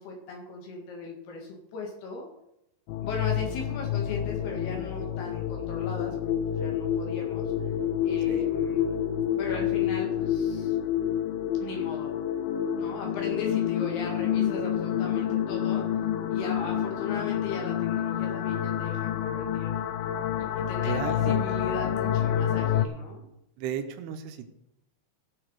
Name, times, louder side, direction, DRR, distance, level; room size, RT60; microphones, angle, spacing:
voice 1, 0.0-2.3 3.0-7.5 8.0-8.9 9.4-10.8 11.6-12.1 12.7-15.9 16.3-19.8 20.4-23.3, left 3 dB, 65° left, 0 dB, 3.8 m, -38 dB
sound 1, 2.9-22.9, left 10 dB, 85° left, 2.1 m, -28 dB
voice 2, 20.8-21.5 23.6-24.5, right 7 dB, 75° right, 8 dB, 2.9 m, -34 dB
17.0 x 7.0 x 4.8 m, 0.83 s
omnidirectional pair, 5.0 m